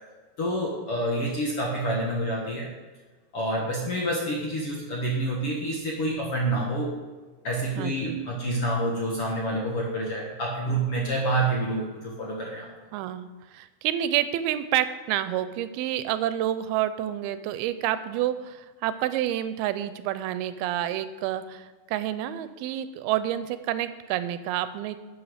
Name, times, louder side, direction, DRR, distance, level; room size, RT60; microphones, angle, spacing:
voice 1, 0.4-2.7 3.3-7.0 7.4-12.7, right 1 dB, 55° left, -2 dB, 1.7 m, -28 dB
voice 2, 7.8-8.2 12.9-25.0, right 12 dB, 90° right, 12 dB, 2.5 m, -29 dB
12.0 x 7.8 x 5.0 m, 1.3 s
omnidirectional pair, 4.4 m